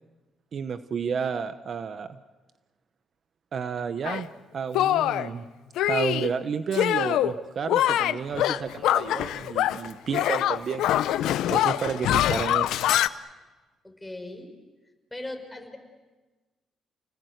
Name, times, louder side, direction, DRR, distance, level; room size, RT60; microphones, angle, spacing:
voice 1, 0.5-2.2 3.5-5.4 5.9-10.9 11.5-12.7, right 6 dB, 50° right, 11 dB, 1.0 m, -31 dB
Shatter, 4.0-4.2 4.7-5.3 5.8-6.3 6.7-7.3 7.7-9.9 10.1-13.1, left 12 dB, 85° left, 0.7 m, -24 dB
voice 2, 13.8-14.5 15.1-15.8, left 1 dB, 10° left, 3 dB, 5.2 m, -38 dB
30.0 x 19.5 x 8.1 m, 1.2 s
cardioid pair, 90°, 0 cm